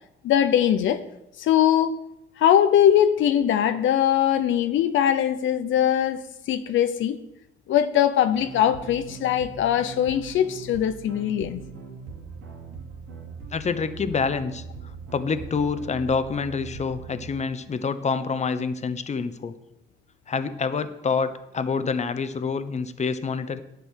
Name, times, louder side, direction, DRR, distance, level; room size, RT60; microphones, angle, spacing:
voice 1, 0.2-1.0 1.4-2.0 2.4-7.2 7.7-11.6, left 10 dB, 75° left, 0.7 m, -21 dB
sound 1, 8.3-17.3, right 5 dB, 80° right, 2.9 m, -41 dB
voice 2, 13.5-19.6 20.3-23.6, left 5 dB, 35° left, 0.9 m, -27 dB
10.5 x 8.6 x 6.3 m
cardioid pair, 90°, 20 cm